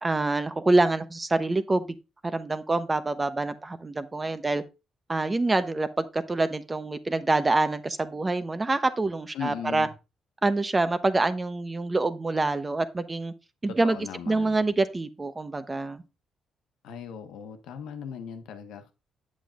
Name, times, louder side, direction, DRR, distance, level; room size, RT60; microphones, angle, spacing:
voice 1, 0.0-1.8 2.2-4.6 5.1-9.9 10.4-13.3 13.6-14.0 14.3-16.0, right 2 dB, 25° right, 0.9 m, -26 dB
voice 2, 9.3-9.9 13.7-14.5 16.8-18.9, left 8 dB, 85° left, 1.2 m, -38 dB
8.5 x 7.7 x 2.5 m
cardioid pair, 90°, 0 cm